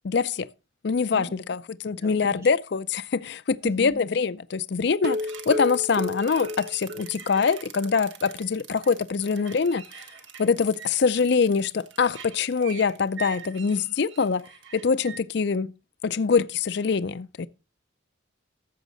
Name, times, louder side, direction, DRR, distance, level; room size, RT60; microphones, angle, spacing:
voice 1, 0.0-0.5 0.8-5.2 5.5-9.8 10.4-14.4 14.7-15.7 16.0-17.5, left 5 dB, 55° left, 0.4 m, -24 dB
voice 2, 1.9-2.5 3.6-4.0, equal, 15° right, 0.9 m, -39 dB
sound 1, 4.9-7.5 7.8-7.9 8.3-8.4 8.8-8.9, left 1 dB, 50° right, 0.7 m, -32 dB
sound 2, 5.1-15.2, right 8 dB, 70° right, 1.2 m, -44 dB
13.5 x 7.3 x 3.9 m
head